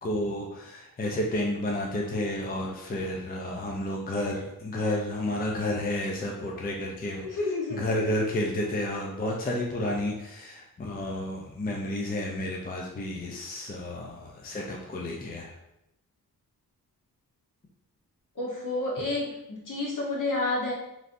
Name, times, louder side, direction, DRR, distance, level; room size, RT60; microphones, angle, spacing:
voice 1, 0.0-7.3 7.7-15.5, left 1 dB, 25° left, 0 dB, 0.4 m, -31 dB
voice 2, 7.2-7.8 18.4-20.7, left 2 dB, 55° left, -4 dB, 1.0 m, -30 dB
3.1 x 2.6 x 2.5 m, 0.88 s
wide cardioid pair, 85°, 37 cm